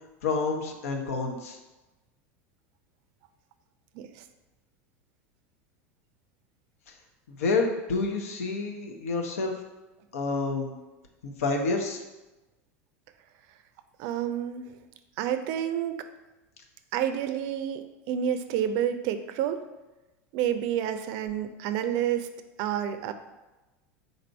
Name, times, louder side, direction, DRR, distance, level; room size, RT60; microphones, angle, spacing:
voice 1, 0.2-1.6 7.4-9.5 10.1-10.7 11.2-12.0, left 3 dB, 80° left, 3 dB, 0.6 m, -28 dB
voice 2, 14.0-14.6 15.2-16.1 16.9-19.6 20.3-22.3 22.6-23.1, right 10 dB, 60° right, 9 dB, 0.4 m, -29 dB
4.0 x 2.6 x 4.4 m, 1.1 s
hypercardioid pair, 90°, 8 cm